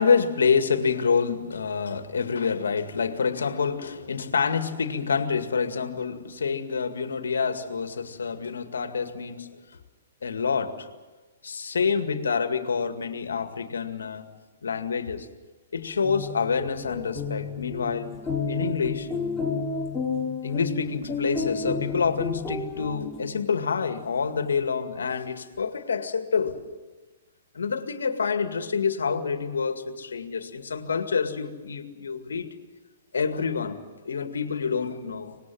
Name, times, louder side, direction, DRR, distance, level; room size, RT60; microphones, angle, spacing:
voice 1, 0.0-9.6 10.2-10.9 11.4-14.3 14.6-15.3 15.7-18.2 18.5-19.1 20.4-26.6 27.5-32.6 33.1-33.8 34.1-35.4, left 5 dB, 80° left, 8 dB, 2.1 m, -27 dB
sound 1, 15.9-23.5, left 4 dB, 5° left, 4.2 m, -31 dB
25.0 x 20.0 x 7.7 m, 1.2 s
hypercardioid pair, 125°, 0 cm